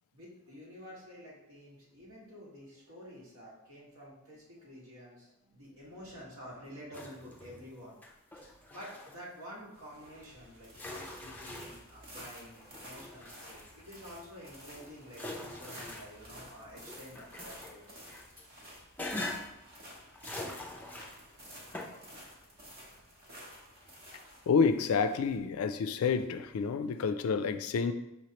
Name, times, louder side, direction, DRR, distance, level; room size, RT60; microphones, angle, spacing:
voice 1, 0.1-8.0 8.3-18.0, equal, 75° right, -5 dB, 1.6 m, -50 dB
sound 1, 6.9-7.7 8.0-9.2 10.2-10.3 10.8-11.9 12.5-13.9 14.5-16.5 16.9-18.4 19.0-19.6 20.1-21.3 21.7-21.9, left 2 dB, 10° left, 0.5 m, -43 dB
sound 2, 9.7-26.6, equal, 45° right, 0.9 m, -52 dB
voice 2, 24.5-27.9, left 5 dB, 80° left, 10 dB, 0.3 m, -29 dB
5.4 x 3.1 x 2.9 m, 0.88 s
head